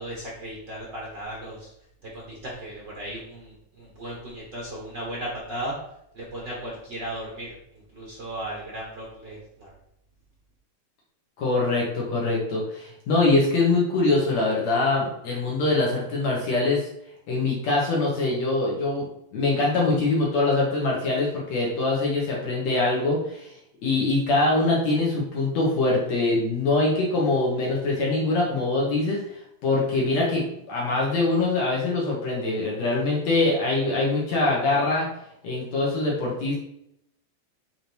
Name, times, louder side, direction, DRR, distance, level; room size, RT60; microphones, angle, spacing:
voice 1, 0.0-1.7 2.0-5.7 6.1-7.6 7.9-9.7, right 1 dB, 60° right, -3 dB, 1.1 m, -36 dB
voice 2, 11.4-16.9 17.3-19.0 19.3-23.5 23.8-29.2 29.6-35.1 35.4-36.6, left 2 dB, 55° left, -4 dB, 2.4 m, -23 dB
6.9 x 3.7 x 4.6 m, 0.76 s
omnidirectional pair, 4.1 m